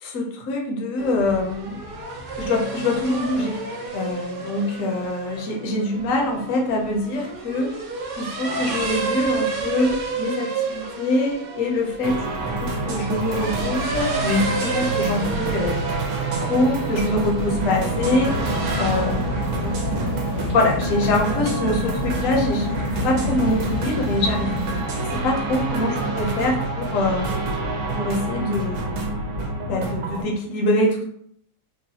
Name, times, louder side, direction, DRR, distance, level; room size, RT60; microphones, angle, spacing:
voice 1, 0.0-1.8 2.4-3.6 3.9-7.7 8.2-12.2 12.6-15.8 16.4-18.4 18.8-19.2 19.6-19.8 20.5-22.8 23.0-24.5 24.9-27.3 28.0-28.9 29.6-31.0, left 2 dB, 60° left, 0 dB, 1.0 m, -24 dB
sound 1, 1.0-20.4, right 4 dB, 90° right, 0.4 m, -31 dB
sound 2, 12.0-30.2, right 2 dB, 70° right, 1.2 m, -27 dB
sound 3, 17.4-24.8, left 1 dB, 85° left, 0.5 m, -28 dB
3.9 x 2.2 x 2.7 m, 0.67 s
omnidirectional pair, 1.7 m